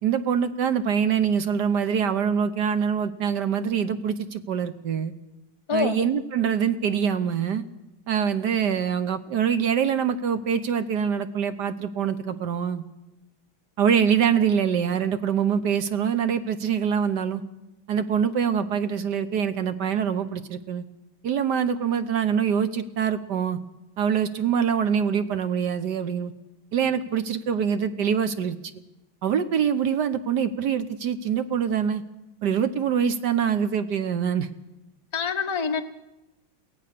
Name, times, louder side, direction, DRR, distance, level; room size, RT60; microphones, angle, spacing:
voice 1, 0.0-5.1 5.7-7.7 8.1-12.8 13.8-17.4 17.9-20.8 21.2-23.6 24.0-26.3 26.7-28.6 29.2-32.0 32.4-34.5, right 7 dB, 60° right, 11 dB, 1.4 m, -24 dB
voice 2, 5.7-6.0 35.1-35.8, left 5 dB, 15° left, 5 dB, 1.1 m, -25 dB
23.0 x 16.5 x 6.7 m, 0.97 s
omnidirectional pair, 2.3 m